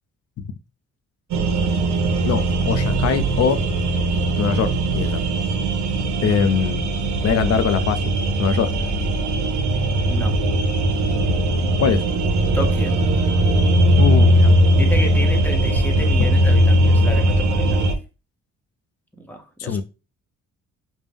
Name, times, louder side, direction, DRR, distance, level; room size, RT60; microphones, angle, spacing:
sound 1, 1.3-17.9, right 1 dB, 70° right, 0.7 m, -19 dB
voice 1, 2.3-3.6 4.4-5.2 6.2-6.9 7.2-8.1 8.4-8.7 11.8-12.0 14.0-14.5 19.6-19.8, left 7 dB, 55° left, 0.5 m, -22 dB
voice 2, 10.0-10.3 12.5-13.0 14.8-17.9 19.3-19.8, equal, 5° left, 0.8 m, -31 dB
5.1 x 2.1 x 3.4 m
cardioid pair, 90°, 30 cm